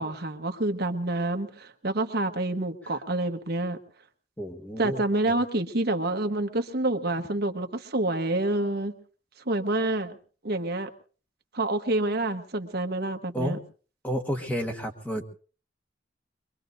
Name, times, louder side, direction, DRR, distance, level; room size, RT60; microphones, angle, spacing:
voice 1, 0.0-3.8 4.8-8.9 9.5-10.2 10.4-10.9 11.5-13.6, right 2 dB, 60° right, 5 dB, 1.2 m, -28 dB
voice 2, 4.4-5.3 13.3-13.6 14.0-15.3, equal, 10° left, 4 dB, 1.4 m, -31 dB
24.0 x 23.0 x 2.6 m, 0.39 s
head